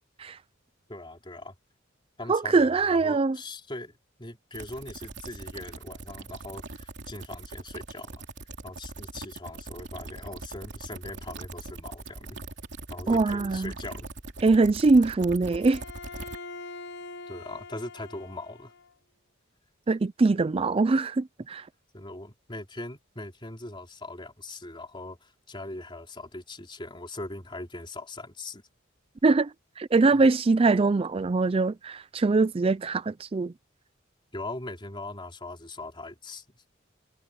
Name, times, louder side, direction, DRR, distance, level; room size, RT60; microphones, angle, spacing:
voice 1, 0.9-1.5 2.2-8.2 8.6-12.4 12.9-14.1 17.3-18.7 19.9-20.0 21.9-28.6 30.0-30.2 34.3-36.6, left 2 dB, 25° left, 3.9 m, -40 dB
voice 2, 2.3-3.4 13.1-13.7 14.4-15.8 19.9-21.7 29.2-29.5 29.8-33.5, right 3 dB, 30° right, 0.4 m, -23 dB
sound 1, 4.5-16.4, right 2 dB, 60° right, 3.1 m, -41 dB
Bowed string instrument, 15.5-18.9, left 3 dB, 60° left, 1.1 m, -43 dB
head